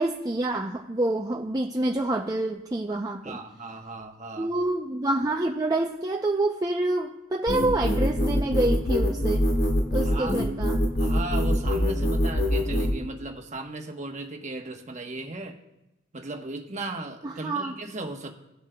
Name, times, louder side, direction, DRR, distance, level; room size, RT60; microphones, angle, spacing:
voice 1, 0.0-3.4 4.4-9.4 9.9-10.8 17.2-17.7, right 2 dB, 20° right, 1 dB, 0.5 m, -27 dB
voice 2, 3.2-4.5 9.9-10.5 11.0-15.6 16.1-18.3, right 2 dB, 40° right, 3 dB, 1.1 m, -36 dB
sound 1, 7.5-12.9, equal, 60° left, 1.5 m, -24 dB
18.0 x 7.3 x 2.3 m, 0.94 s
head